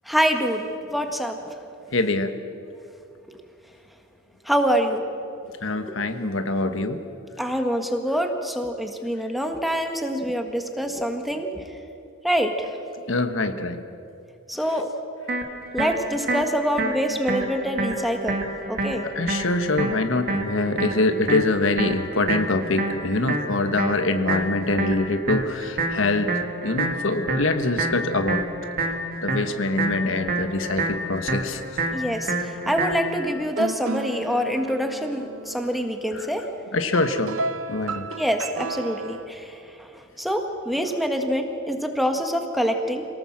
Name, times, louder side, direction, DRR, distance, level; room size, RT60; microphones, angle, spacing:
voice 1, 0.0-1.4 4.4-5.0 7.4-11.6 12.2-12.8 14.5-14.9 15.7-18.4 18.7-19.1 31.9-36.5 38.2-43.1, equal, ahead, 4 dB, 1.6 m, -25 dB
voice 2, 1.9-2.4 5.6-7.0 13.1-13.8 19.1-26.3 26.6-28.4 29.2-31.6 36.1-36.3 36.7-37.4 37.7-38.1, left 2 dB, 70° left, 9 dB, 1.3 m, -24 dB
sound 1, 15.3-33.3, right 2 dB, 45° right, 2.1 m, -28 dB
sound 2, 33.3-39.3, right 3 dB, 80° right, 0.9 m, -34 dB
26.5 x 18.5 x 7.5 m, 2.7 s
head